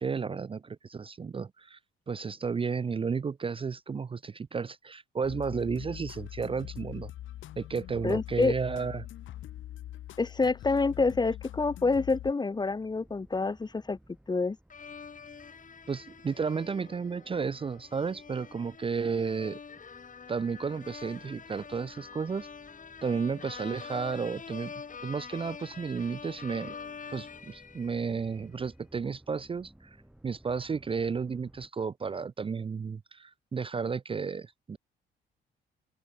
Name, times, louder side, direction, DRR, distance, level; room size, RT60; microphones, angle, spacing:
voice 1, 0.0-1.8 2.1-7.1 7.6-9.1 15.9-19.6 20.3-22.5 23.0-24.7 25.0-26.7 27.1-30.0 30.2-34.8, right 5 dB, 25° right, 0.5 m, -33 dB
sound 1, 5.2-12.3, left 13 dB, 80° left, 3.1 m, -43 dB
voice 2, 8.0-8.5 10.2-14.0 14.3-14.6, left 3 dB, 20° left, 0.9 m, -27 dB
sound 2, 12.5-31.7, right 1 dB, 5° right, 5.7 m, -59 dB
sound 3, 14.7-28.4, left 6 dB, 40° left, 4.5 m, -46 dB
open air
cardioid pair, 90°, 20 cm